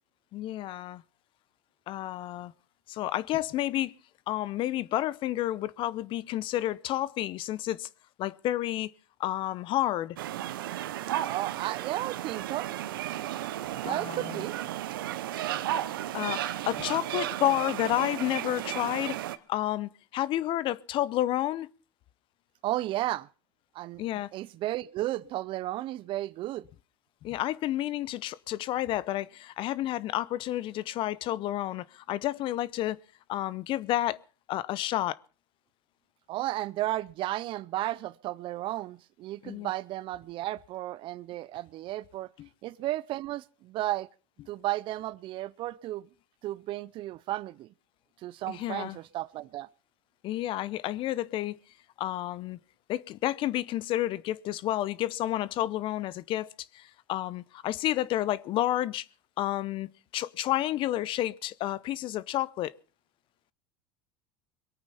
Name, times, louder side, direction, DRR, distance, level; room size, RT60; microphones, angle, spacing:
voice 1, 0.3-1.0 1.9-2.5 2.9-4.0 4.3-7.9 8.2-8.9 9.2-10.2 13.8-14.4 16.1-19.2 19.5-21.7 24.0-24.3 27.2-33.0 33.3-34.2 34.5-35.2 39.4-39.7 42.4-42.5 48.5-49.0 50.2-51.6 52.0-52.6 52.9-56.5 56.7-59.0 59.4-62.7, left 14 dB, 50° left, 0.7 m, -30 dB
sound 1, 10.2-19.4, right 13 dB, 85° right, 0.9 m, -34 dB
voice 2, 11.3-12.7 13.8-14.6 22.6-23.3 23.7-24.0 24.3-26.7 36.3-42.3 42.6-44.1 44.5-46.1 46.4-47.7 48.2-49.7, right 15 dB, 50° right, 0.6 m, -33 dB
22.0 x 8.9 x 5.7 m
supercardioid pair, 100°, 11 cm